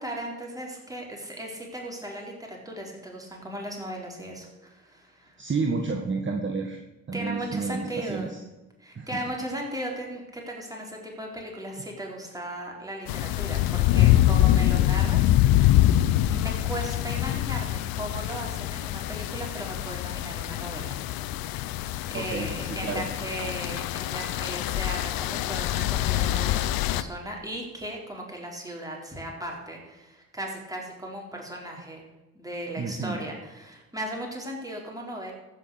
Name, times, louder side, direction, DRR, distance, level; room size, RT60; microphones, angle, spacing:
voice 1, 0.0-5.4 7.1-8.4 8.8-15.7 16.3-21.0 21.4-21.7 22.1-32.1 32.3-35.3, right 1 dB, 10° right, -1 dB, 4.4 m, -37 dB
voice 2, 5.4-6.8 7.1-8.4 8.9-9.2 22.1-23.1 32.7-33.2, right 4 dB, 30° right, 2 dB, 1.6 m, -30 dB
sound 1, 13.1-27.0, left 13 dB, 70° left, 0.7 m, -25 dB
15.0 x 5.9 x 6.6 m, 1.1 s
hypercardioid pair, 50°, 37 cm